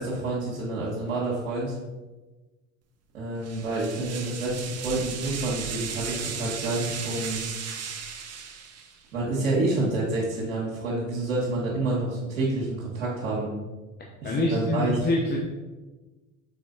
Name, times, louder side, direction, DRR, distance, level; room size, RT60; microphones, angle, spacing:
voice 1, 0.0-1.8 3.1-7.4 9.1-13.5 14.2-15.0, right 2 dB, 80° right, -8 dB, 1.6 m, -28 dB
sound 1, 3.4-9.0, right 6 dB, 40° right, 0.9 m, -36 dB
voice 2, 14.2-15.4, left 2 dB, 25° left, -1 dB, 0.9 m, -25 dB
6.0 x 4.5 x 3.9 m, 1.2 s
hypercardioid pair, 75°, 39 cm